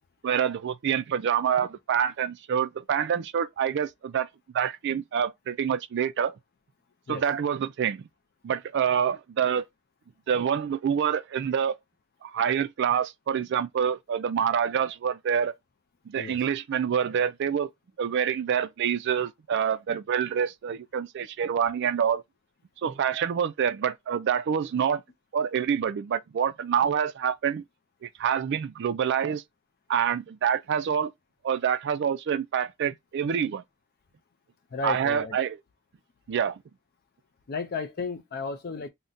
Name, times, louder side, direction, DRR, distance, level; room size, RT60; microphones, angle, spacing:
voice 1, 0.2-4.3 4.5-6.3 7.1-8.1 8.4-9.6 10.3-11.7 12.2-15.5 16.1-17.7 18.0-22.2 22.8-25.0 25.3-27.6 28.0-29.4 29.9-31.1 31.4-33.6 34.8-35.6 36.3-36.6, right 8 dB, 50° right, 0.3 m, -26 dB
voice 2, 34.7-35.4 37.5-38.9, left 4 dB, 45° left, 0.4 m, -33 dB
2.6 x 2.1 x 3.6 m
head